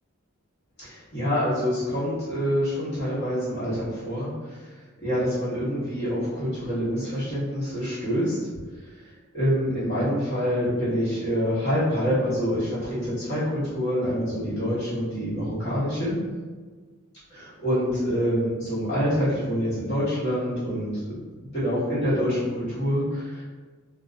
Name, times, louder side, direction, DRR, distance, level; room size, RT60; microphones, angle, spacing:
voice 1, 0.8-4.3 5.0-8.4 9.3-16.2 17.3-21.2 21.5-23.4, equal, 55° left, -11 dB, 1.4 m, -26 dB
2.7 x 2.3 x 2.4 m, 1.4 s
head